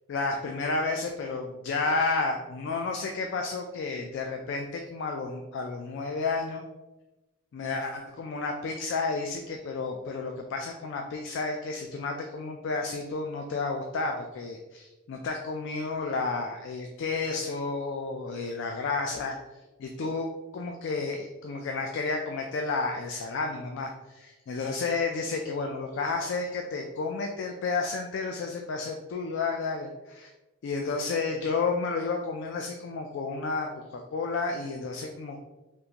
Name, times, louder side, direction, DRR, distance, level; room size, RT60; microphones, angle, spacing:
voice 1, 0.1-6.6 7.5-19.3 19.8-20.3 20.5-30.3 30.6-35.4, left 4 dB, 60° left, 3 dB, 0.3 m, -31 dB
3.6 x 2.5 x 2.8 m, 1.1 s
head